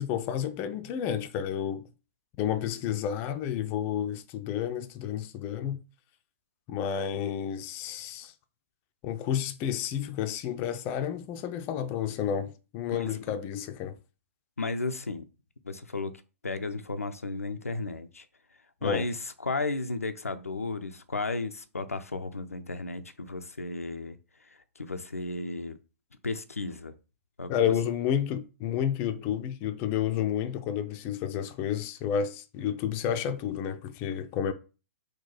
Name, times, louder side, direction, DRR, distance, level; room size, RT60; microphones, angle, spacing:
voice 1, 0.0-1.9 2.4-5.8 6.7-8.3 9.0-14.0 18.8-19.1 27.5-34.5, left 9 dB, 30° left, 0.4 m, -30 dB
voice 2, 14.6-15.2 15.6-18.3 18.8-24.2 24.8-25.8 26.2-27.0 27.4-27.7, left 3 dB, 85° left, 0.4 m, -34 dB
3.9 x 2.2 x 4.1 m
figure-of-eight pair, 115°, 8 cm